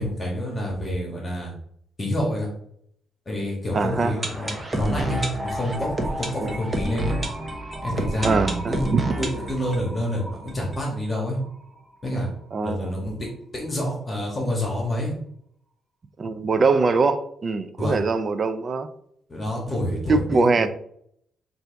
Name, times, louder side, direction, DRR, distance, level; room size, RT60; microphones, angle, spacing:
voice 1, 0.0-1.5 2.0-2.5 3.2-7.2 7.8-11.4 12.0-12.3 12.6-15.1 17.8-18.0 19.3-20.7, left 1 dB, 25° left, 1.4 m, -28 dB
sound 1, 3.7-11.5 11.8-11.9 12.0-12.1 12.7-12.8, right 1 dB, 25° right, 0.8 m, -30 dB
voice 2, 3.7-4.1 6.4-6.6 8.2-9.1 12.5-12.9 16.2-18.9 20.1-20.7, right 4 dB, 40° right, 0.4 m, -22 dB
5.6 x 2.7 x 3.3 m
cardioid pair, 105°, 0 cm